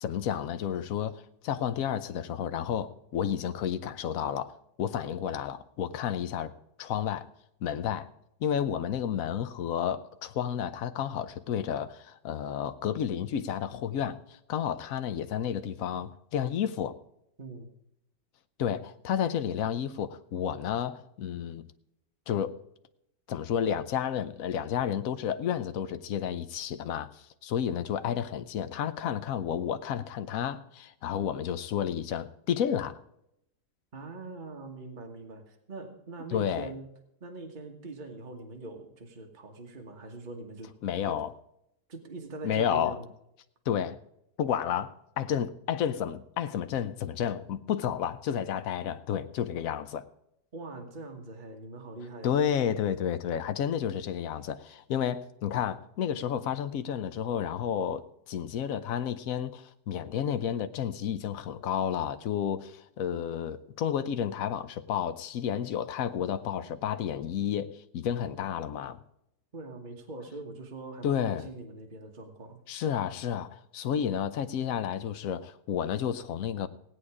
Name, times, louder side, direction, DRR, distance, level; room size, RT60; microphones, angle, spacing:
voice 1, 0.0-6.5 6.8-7.3 7.6-8.1 8.4-17.0 18.6-21.6 22.3-22.5 23.3-33.0 36.3-36.7 40.8-41.3 42.4-43.0 43.7-44.0 44.4-50.1 52.2-69.0 71.0-71.5 72.7-76.7, left 9 dB, 60° left, 1.0 m, -31 dB
voice 2, 17.4-17.7 33.9-36.8 37.2-40.7 41.0-41.2 41.9-43.1 50.5-52.4 69.5-72.6, right 2 dB, 30° right, 1.4 m, -42 dB
17.5 x 8.7 x 4.9 m
omnidirectional pair, 1.9 m